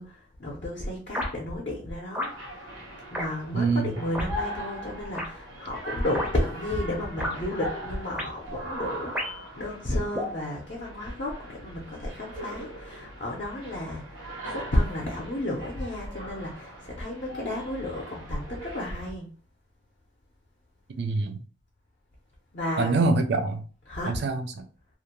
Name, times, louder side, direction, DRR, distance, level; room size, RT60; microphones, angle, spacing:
voice 1, 0.0-2.3 2.6-2.7 3.1-19.3 22.5-23.0 23.9-24.2, left 1 dB, 40° left, 0.6 m, -32 dB
sound 1, 1.1-1.3 2.1-2.3 3.1-3.3 4.1-4.3 5.1-5.3 6.1-6.3 7.2-7.4 8.1-8.3 9.2-9.5 10.1-10.4, left 1 dB, 5° right, 0.5 m, -31 dB
sound 2, 2.2-19.1, equal, 80° right, 1.1 m, -40 dB
voice 2, 3.5-4.0 21.0-21.4 22.8-23.6 24.1-24.6, right 3 dB, 55° right, 0.4 m, -25 dB
2.4 x 2.1 x 2.9 m
head